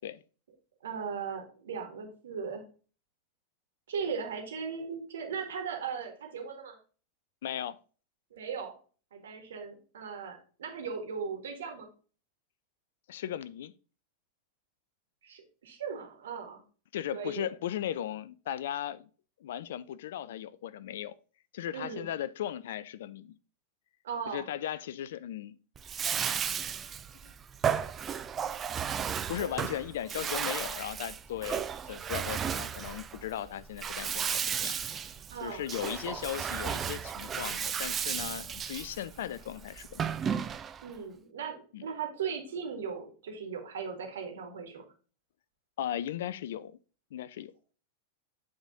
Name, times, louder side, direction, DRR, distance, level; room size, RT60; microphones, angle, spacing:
voice 1, 0.8-2.6 3.9-6.8 8.3-8.7 9.1-11.9 15.2-16.6 17.1-17.5 21.7-22.1 24.0-24.4 35.3-35.7 40.8-44.8, right 6 dB, 60° right, 1.6 m, -38 dB
voice 2, 7.4-7.8 13.1-13.7 16.9-19.1 19.4-21.1 21.5-23.4 24.3-25.5 27.2-27.3 28.4-28.6 29.3-35.1 35.4-40.2 41.7-41.9 45.8-46.7 47.1-47.5, left 11 dB, 55° left, 0.3 m, -37 dB
Bathtub (filling or washing), 25.8-40.9, right 8 dB, 25° right, 0.4 m, -34 dB
8.6 x 3.6 x 3.9 m
figure-of-eight pair, 90°, 0 cm